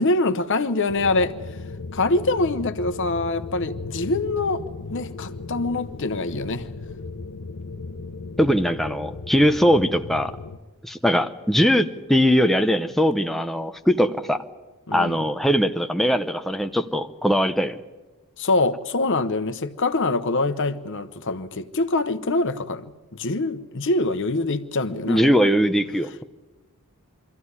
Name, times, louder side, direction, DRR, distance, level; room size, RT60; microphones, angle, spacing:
voice 1, 0.0-1.3 1.9-4.6 4.9-6.7 14.9-15.2 18.4-22.9 23.1-25.2, left 2 dB, 60° left, 1.0 m, -24 dB
sound 1, 0.9-10.6, left 3 dB, 85° left, 0.8 m, -36 dB
voice 2, 8.4-10.3 10.8-14.4 14.9-17.8 25.1-26.2, equal, ahead, 0.6 m, -21 dB
24.0 x 14.5 x 9.7 m
head